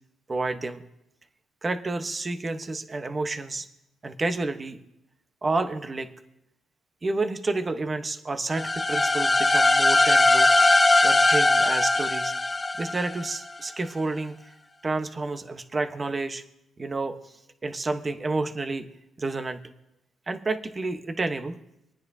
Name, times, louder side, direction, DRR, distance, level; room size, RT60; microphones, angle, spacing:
voice 1, 0.3-0.8 1.6-3.7 4.0-4.8 5.4-6.1 7.0-10.5 11.0-12.3 12.8-14.4 14.8-16.4 16.8-17.2 17.6-18.9 19.2-19.6 20.3-21.6, right 3 dB, 30° right, 7 dB, 1.1 m, -30 dB
sound 1, 8.5-13.4, left 2 dB, 20° left, 1.1 m, -20 dB
26.0 x 9.5 x 2.8 m, 0.85 s
cardioid pair, 90°, 0 cm